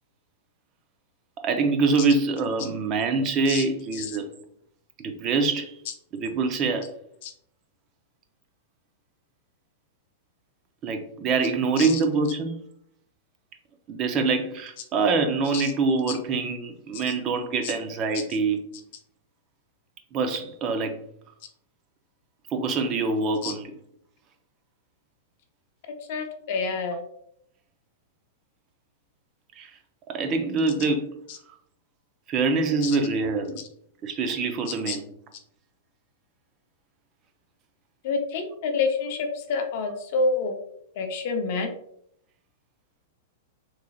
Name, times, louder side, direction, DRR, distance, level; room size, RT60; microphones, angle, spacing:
voice 1, 1.4-4.3 5.0-5.8 6.1-6.9 10.8-12.6 13.9-18.6 20.1-21.0 22.5-23.7 29.6-29.8 30.1-31.2 32.3-33.6 34.0-35.0, right 4 dB, 25° right, 0.5 m, -25 dB
voice 2, 26.1-27.0 31.3-31.4 32.8-33.0 34.9-35.0 38.0-40.6 40.9-41.7, left 4 dB, 50° left, 0.7 m, -28 dB
3.8 x 3.1 x 2.3 m
supercardioid pair, 160°, 0 cm